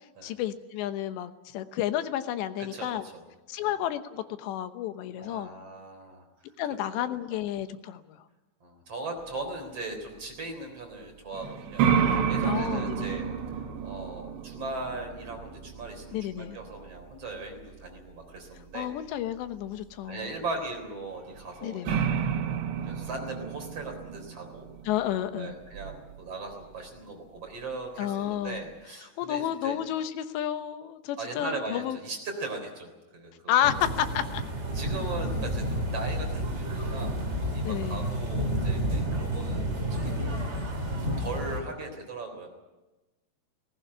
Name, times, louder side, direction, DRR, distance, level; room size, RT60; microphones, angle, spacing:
voice 1, 0.2-3.0 3.5-5.5 6.6-8.2 12.4-13.2 16.1-16.6 18.7-20.3 21.6-22.1 24.8-25.5 28.0-28.6 29.2-32.0 33.5-34.4 37.6-38.1, left 11 dB, 90° left, 10 dB, 3.3 m, -31 dB
voice 2, 2.7-3.2 3.6-3.7 5.2-6.2 8.6-13.2 13.8-18.9 20.0-22.5 22.8-24.7 25.3-29.8 31.2-33.7 34.7-40.7 41.2-42.5, right 2 dB, 35° right, 3 dB, 4.5 m, -39 dB
sound 1, 11.3-18.1 21.4-21.5 21.9-26.2, right 7 dB, 80° right, 3.5 m, -30 dB
sound 2, 33.6-41.6, equal, 20° right, 2.3 m, -30 dB
19.0 x 19.0 x 9.8 m, 1.1 s
omnidirectional pair, 4.9 m